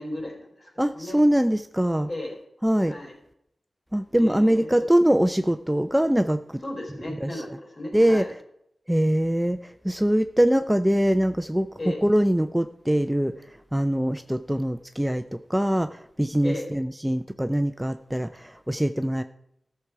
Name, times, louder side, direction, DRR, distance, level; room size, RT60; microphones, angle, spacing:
voice 1, 0.0-1.2 2.1-2.4 2.9-3.1 4.1-4.7 6.6-8.3 11.8-12.0 16.4-16.7, left 1 dB, 45° left, -1 dB, 4.1 m, -35 dB
voice 2, 0.8-2.1 2.6-3.0 3.9-6.6 7.2-7.3 7.9-8.2 8.9-11.7 12.0-13.3 13.7-19.2, equal, 5° right, 9 dB, 0.4 m, -23 dB
14.5 x 6.7 x 4.7 m, 0.75 s
wide cardioid pair, 95°, 0 cm